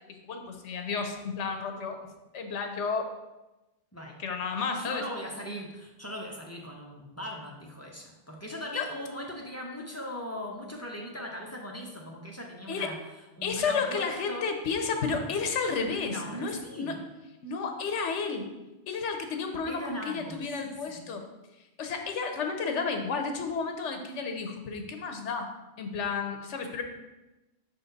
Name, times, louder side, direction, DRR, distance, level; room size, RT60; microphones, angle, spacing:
voice 1, 0.1-2.0 2.3-3.1 4.2-5.0 8.7-8.9 12.7-12.9 13.4-16.9 17.4-18.5 18.9-21.2 21.8-25.5 25.8-26.8, left 5 dB, 80° left, 5 dB, 1.1 m, -32 dB
voice 2, 3.9-4.2 4.8-13.0 13.4-14.5 16.1-17.1 19.7-20.5 20.9-21.1, left 1 dB, 15° left, -1 dB, 0.5 m, -39 dB
5.7 x 4.2 x 3.9 m, 1.0 s
omnidirectional pair, 1.2 m